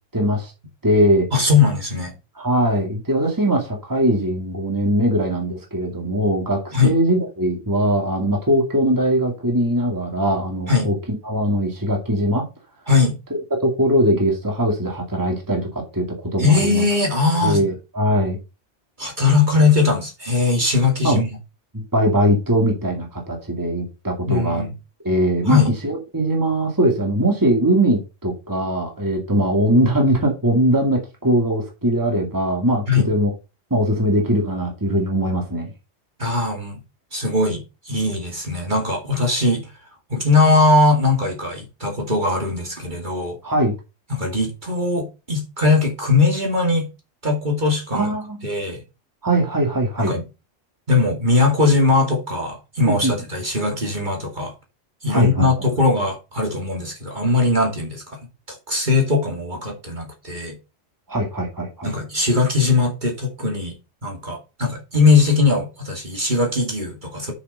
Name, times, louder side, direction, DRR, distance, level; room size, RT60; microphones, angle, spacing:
voice 1, 0.1-0.5 0.8-1.3 2.4-11.0 11.2-12.4 13.6-16.8 17.4-18.4 21.0-21.2 21.7-24.6 25.0-33.3 33.7-35.7 43.4-43.7 47.9-48.5 49.2-50.1 52.8-53.1 55.1-55.5 61.1-61.9, right 1 dB, 15° right, 2.2 m, -21 dB
voice 2, 1.3-2.1 6.7-6.9 10.7-10.9 12.9-13.2 16.4-17.6 19.0-21.3 24.3-24.7 25.5-25.8 32.9-33.1 36.2-36.8 37.1-39.7 40.1-43.4 44.1-46.9 47.2-48.1 48.4-48.8 50.0-50.2 50.9-54.5 55.0-58.2 58.5-60.6 61.8-63.7 64.0-67.3, left 3 dB, 40° right, 2.6 m, -20 dB
7.1 x 6.7 x 5.5 m
omnidirectional pair, 1.3 m